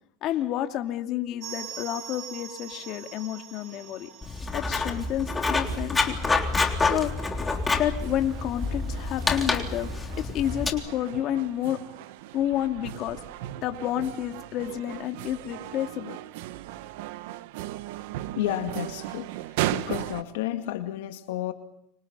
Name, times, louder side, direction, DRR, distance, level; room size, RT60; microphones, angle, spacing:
voice 1, 0.2-4.1 4.5-6.2 6.8-7.1 7.7-9.9 10.2-11.8 12.3-13.2 13.6-16.2, left 12 dB, 50° left, 6 dB, 2.6 m, -30 dB
sound 1, 1.4-11.9 12.2-12.3 12.5-12.7 13.3-13.4, right 9 dB, 45° right, 6.9 m, -46 dB
Writing, 4.2-10.7, left 3 dB, 15° left, 3.4 m, -28 dB
sound 2, 5.6-20.2, right 15 dB, 75° right, 1.3 m, -37 dB
voice 2, 18.4-19.3 19.7-21.5, left 14 dB, 80° left, 7 dB, 2.1 m, -31 dB
29.0 x 26.0 x 5.6 m, 0.72 s
supercardioid pair, 130°, 0 cm